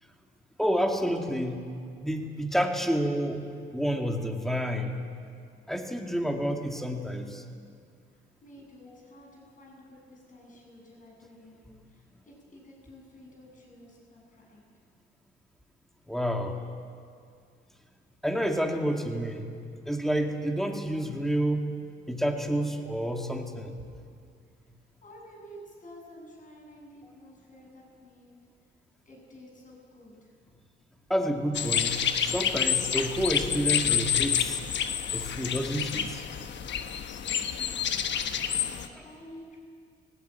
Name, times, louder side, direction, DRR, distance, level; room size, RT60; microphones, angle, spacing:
voice 1, 0.6-1.6 2.0-3.4 3.7-5.0 5.7-7.4 16.1-16.6 18.2-19.5 19.9-21.7 22.1-23.8 31.1-34.6 35.1-36.2 38.9-39.1, equal, ahead, 3 dB, 2.3 m, -29 dB
voice 2, 8.1-14.6 25.0-28.3 29.0-30.3 37.0-38.3 38.7-39.6, equal, 40° left, -1 dB, 7.8 m, -51 dB
sound 1, 31.5-38.9, left 8 dB, 65° left, 1.2 m, -28 dB
18.0 x 17.0 x 9.3 m, 2.3 s
cardioid pair, 90°, 20 cm